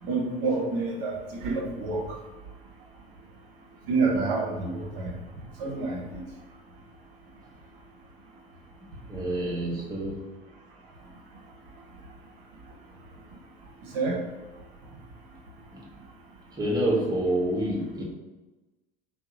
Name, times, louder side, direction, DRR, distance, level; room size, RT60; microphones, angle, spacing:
voice 1, 0.0-2.2 3.9-5.1 5.6-6.2 13.8-14.2, right 3 dB, 60° right, -1 dB, 0.7 m, -28 dB
voice 2, 9.1-10.2 15.7-15.9 16.6-18.0, right 1 dB, 15° right, -3 dB, 0.8 m, -27 dB
2.8 x 2.0 x 3.6 m, 1.1 s
figure-of-eight pair, 70°, 31 cm